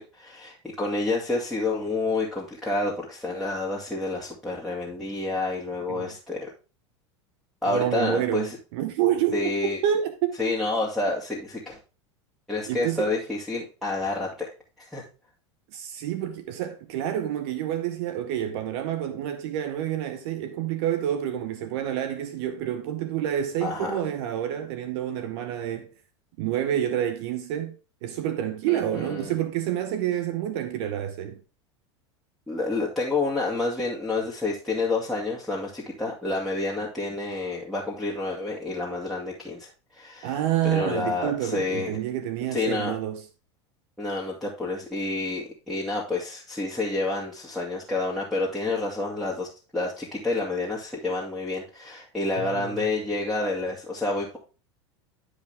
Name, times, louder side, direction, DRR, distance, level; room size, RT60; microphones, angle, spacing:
voice 1, 0.0-6.5 7.6-8.6 9.3-9.8 10.4-11.8 12.5-14.5 14.8-15.0 23.6-24.0 28.7-29.3 32.5-40.3 40.6-41.9 42.5-42.9 44.0-49.5 49.7-54.4, left 2 dB, ahead, 2.5 m, -29 dB
voice 2, 7.7-9.5 9.8-10.4 12.7-13.1 15.7-25.9 26.4-27.7 28.0-31.4 40.2-43.2 52.4-52.8, right 11 dB, 65° right, 1.0 m, -28 dB
11.5 x 5.1 x 3.5 m
hypercardioid pair, 90°, 15 cm